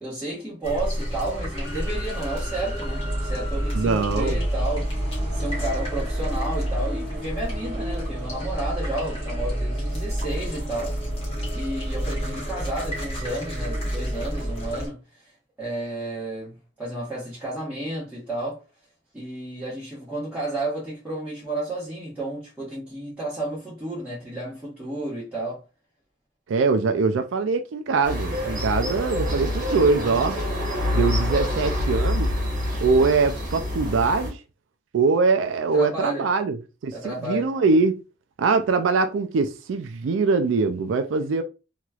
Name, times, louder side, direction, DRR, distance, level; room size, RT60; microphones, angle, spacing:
voice 1, 0.0-11.0 11.5-15.3 15.6-18.6 19.1-25.6 35.7-36.3 36.9-37.5, right 2 dB, 10° right, 1.2 m, -32 dB
sound 1, 0.6-14.9, equal, 30° left, 1.3 m, -28 dB
voice 2, 3.7-4.4 26.5-30.4 30.9-32.3 32.8-34.4 34.9-36.6 36.8-38.0 38.4-41.4, right 4 dB, 90° right, 0.4 m, -22 dB
sound 2, 28.0-34.3, left 1 dB, 45° right, 1.3 m, -26 dB
3.0 x 2.9 x 2.3 m
head